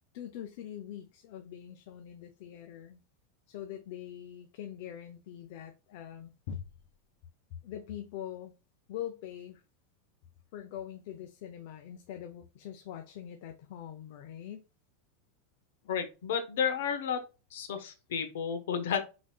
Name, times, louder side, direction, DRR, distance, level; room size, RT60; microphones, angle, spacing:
voice 1, 0.1-3.0 3.5-6.7 7.6-8.5 8.9-9.6 10.5-14.6, left 10 dB, 55° left, 0.6 m, -43 dB
voice 2, 15.9-17.2 17.5-19.0, left 7 dB, 90° left, 1.1 m, -32 dB
4.8 x 4.1 x 2.3 m
supercardioid pair, 165°, 0 cm